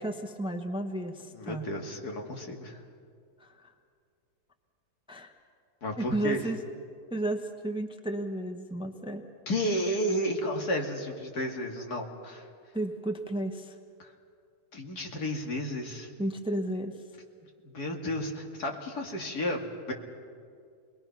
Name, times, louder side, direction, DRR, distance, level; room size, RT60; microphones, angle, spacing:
voice 1, 0.0-1.7 3.4-3.7 5.1-5.3 6.0-6.6 7.1-9.2 12.7-13.7 16.2-16.9, right 1 dB, 5° right, 5 dB, 1.0 m, -33 dB
voice 2, 1.3-2.8 5.8-6.4 9.5-12.5 14.0-14.1 14.7-16.1 17.6-19.9, equal, 75° left, 2 dB, 2.7 m, -32 dB
28.0 x 21.0 x 5.9 m, 2.3 s
omnidirectional pair, 1.7 m